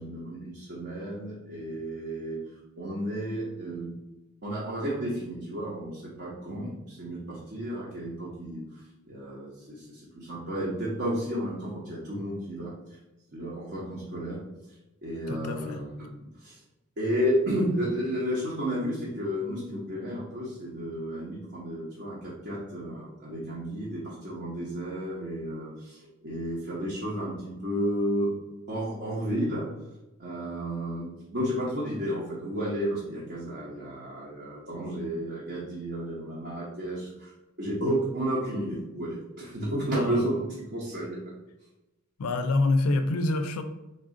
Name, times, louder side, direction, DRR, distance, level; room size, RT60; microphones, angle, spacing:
voice 1, 0.0-2.4 2.8-3.9 4.4-12.7 13.3-14.4 15.0-15.9 16.4-16.6 17.0-28.3 28.7-29.6 30.2-37.3 37.6-41.2, equal, 50° right, -7 dB, 0.9 m, -32 dB
voice 2, 15.3-15.8 39.9-40.3 42.2-43.6, left 2 dB, 80° left, 9 dB, 0.4 m, -26 dB
4.1 x 2.4 x 3.6 m, 1.0 s
head